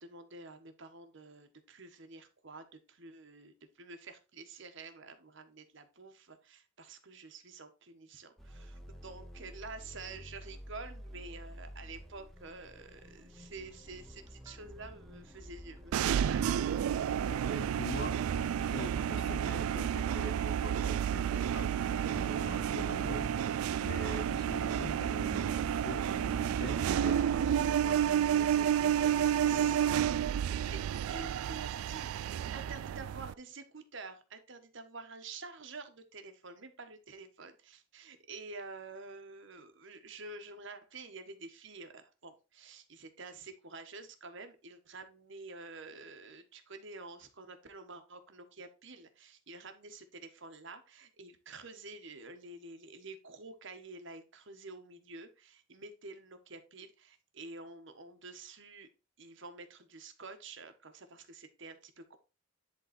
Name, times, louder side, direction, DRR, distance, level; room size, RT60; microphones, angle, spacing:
voice 1, 0.0-16.7 27.4-27.7 29.4-29.8 30.5-30.8 31.1-32.1 32.5-58.9 59.2-62.2, right 3 dB, 60° right, 1.3 m, -49 dB
sound 1, 8.4-28.1, equal, ahead, 1.1 m, -50 dB
sound 2, 13.5-29.0, right 1 dB, 15° right, 0.7 m, -55 dB
sound 3, 15.9-33.3, right 9 dB, 85° right, 0.3 m, -31 dB
voice 2, 17.2-23.3 23.8-29.9, left 1 dB, 55° left, 1.6 m, -44 dB
10.5 x 4.0 x 4.3 m
head